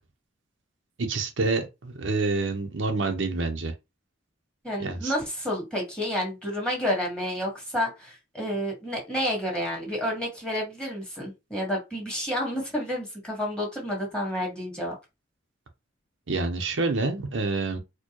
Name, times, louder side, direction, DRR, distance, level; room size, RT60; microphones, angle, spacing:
voice 1, 1.1-3.7 4.8-5.1 16.3-17.8, right 3 dB, 70° right, 0.7 m, -27 dB
voice 2, 4.6-14.9, equal, 5° left, 1.5 m, -30 dB
4.4 x 2.2 x 3.0 m
head